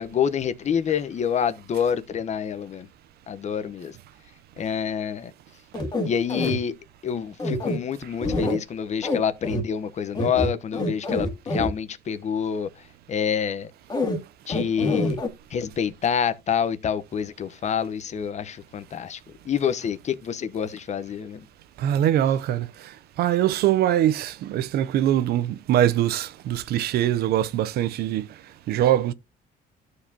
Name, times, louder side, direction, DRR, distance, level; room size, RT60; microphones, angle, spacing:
voice 1, 0.0-2.9 3.3-3.9 4.6-5.3 6.0-6.7 7.0-12.7 13.1-13.7 14.5-15.2 15.5-19.2 19.5-21.4, left 8 dB, 45° left, 1.0 m, -27 dB
sound 1, 5.7-6.6 7.4-7.8 8.2-8.6 9.0-9.2 9.4-9.6 10.1-11.7 13.9-14.2 14.5-15.3, left 1 dB, 25° left, 2.0 m, -25 dB
voice 2, 21.8-28.3 28.7-29.1, right 11 dB, 70° right, 0.6 m, -23 dB
13.0 x 4.8 x 2.8 m
cardioid pair, 110°, 17 cm